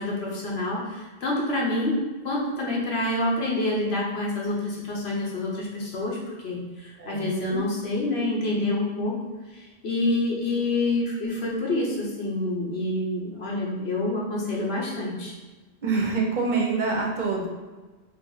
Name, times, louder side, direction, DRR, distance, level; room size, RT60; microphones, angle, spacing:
voice 1, 0.0-2.0 2.2-9.1 9.5-15.3, left 2 dB, 80° left, -4 dB, 1.1 m, -27 dB
voice 2, 7.0-7.6 15.8-17.5, right 4 dB, 55° right, -1 dB, 0.7 m, -26 dB
2.9 x 2.6 x 3.8 m, 1.2 s
omnidirectional pair, 1.1 m